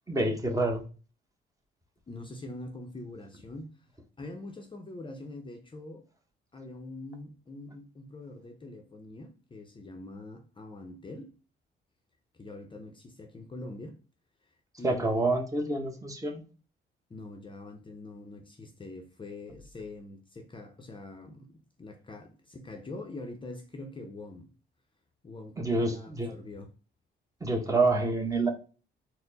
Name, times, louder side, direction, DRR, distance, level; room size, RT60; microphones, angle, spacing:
voice 1, 0.1-0.8 14.8-16.4 25.6-26.3 27.4-28.5, right 2 dB, 15° right, 0.9 m, -27 dB
voice 2, 2.1-3.7 4.2-6.0 6.5-11.3 12.3-14.0 14.8-15.3 17.1-24.5 25.2-26.7, left 2 dB, 25° left, 0.6 m, -44 dB
4.2 x 2.1 x 3.9 m
cardioid pair, 90°, 20 cm